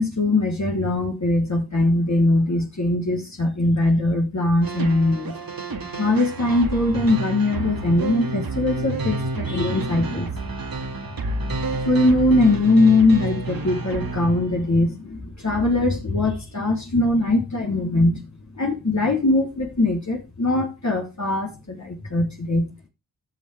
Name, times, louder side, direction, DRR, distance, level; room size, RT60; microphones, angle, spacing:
voice 1, 0.0-5.4 6.0-10.3 11.8-18.2 18.6-22.7, left 2 dB, 40° left, 3.6 m, -21 dB
sound 1, 4.6-14.8, right 3 dB, 55° right, 2.1 m, -30 dB
17.0 x 6.3 x 3.5 m
cardioid pair, 45°, 41 cm